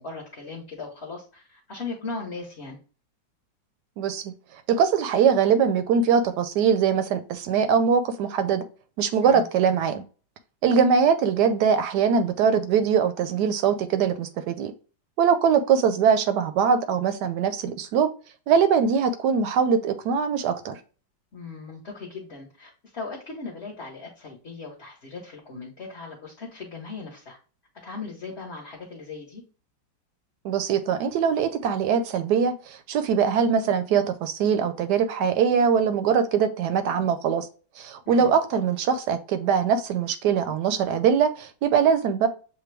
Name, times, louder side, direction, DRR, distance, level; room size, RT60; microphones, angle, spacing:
voice 1, 0.0-2.8 9.2-9.4 21.3-27.4 27.8-29.4 38.0-38.3, left 4 dB, 40° left, -2 dB, 1.1 m, -38 dB
voice 2, 4.0-4.3 4.7-8.6 9.0-10.0 10.6-14.7 15.2-18.1 18.5-20.8 30.4-37.5 37.8-42.3, right 7 dB, 70° right, 10 dB, 1.1 m, -22 dB
6.6 x 2.2 x 3.3 m, 0.37 s
omnidirectional pair, 2.0 m